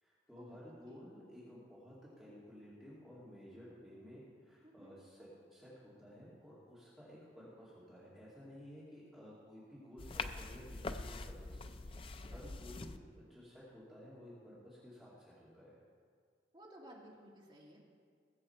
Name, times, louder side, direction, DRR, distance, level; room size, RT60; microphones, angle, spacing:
voice 1, 0.0-11.6 12.0-15.8, equal, ahead, -9 dB, 2.2 m, -54 dB
voice 2, 4.6-5.0 12.2-12.5 16.5-17.8, right 1 dB, 30° right, -4 dB, 2.2 m, -57 dB
sound 1, 10.0-13.0, left 3 dB, 30° left, 0.4 m, -44 dB
19.5 x 7.8 x 4.4 m, 2.1 s
head